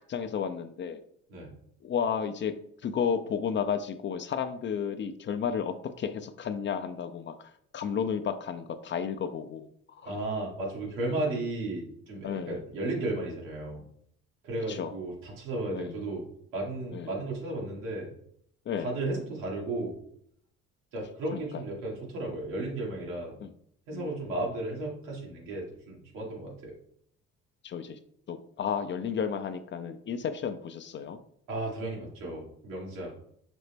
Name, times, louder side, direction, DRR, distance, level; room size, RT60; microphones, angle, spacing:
voice 1, 0.1-1.0 1.8-2.5 2.8-9.7 10.0-10.1 12.2-12.6 14.7-14.9 15.7-16.0 16.9-17.1 18.7-18.9 21.3-21.4 23.4-23.5 23.9-24.1 27.6-28.0 28.3-31.2, left 7 dB, 35° left, 10 dB, 0.4 m, -32 dB
voice 2, 10.0-13.8 14.4-16.2 16.5-18.1 18.8-19.9 20.9-23.4 23.9-26.7 31.5-33.1, right 2 dB, 85° right, -3 dB, 1.5 m, -34 dB
5.1 x 2.1 x 3.3 m, 0.68 s
supercardioid pair, 70°, 33 cm